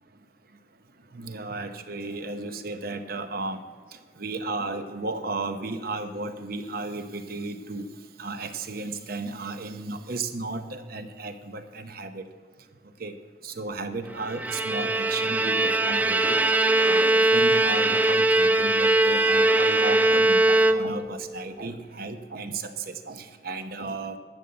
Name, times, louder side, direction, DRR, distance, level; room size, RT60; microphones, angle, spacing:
voice 1, 1.1-3.6 4.2-7.8 8.2-12.2 13.0-13.1 13.4-16.4 16.8-24.2, right 3 dB, 50° right, 8 dB, 0.9 m, -34 dB
Bowed string instrument, 14.2-21.2, right 2 dB, 10° right, 0.3 m, -21 dB
11.5 x 7.0 x 7.6 m, 1.5 s
head